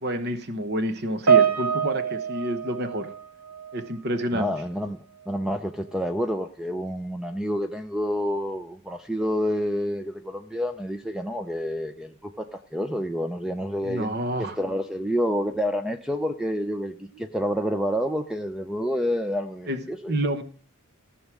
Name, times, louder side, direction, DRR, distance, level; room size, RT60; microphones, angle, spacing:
voice 1, 0.0-3.1 3.7-4.5 13.8-14.6 19.7-19.8 20.1-20.4, equal, 45° right, 10 dB, 1.1 m, -28 dB
Piano, 1.3-3.9 4.2-4.5 5.3-5.4, right 7 dB, 65° right, 1.6 m, -24 dB
voice 2, 4.3-5.0 5.3-14.1 14.4-20.2, equal, 5° right, 8 dB, 0.5 m, -28 dB
15.0 x 6.4 x 6.1 m, 0.42 s
head